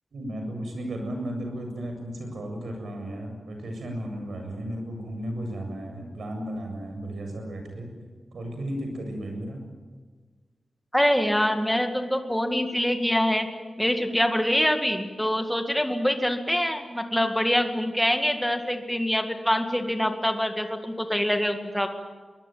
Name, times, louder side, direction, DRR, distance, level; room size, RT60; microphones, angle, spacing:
voice 1, 0.1-7.9 8.3-9.6, right 1 dB, 75° right, 4 dB, 7.5 m, -34 dB
voice 2, 10.9-13.5 13.8-21.9, equal, 5° left, 5 dB, 2.1 m, -25 dB
23.0 x 21.0 x 9.3 m, 1.4 s
wide cardioid pair, 160°, 0 cm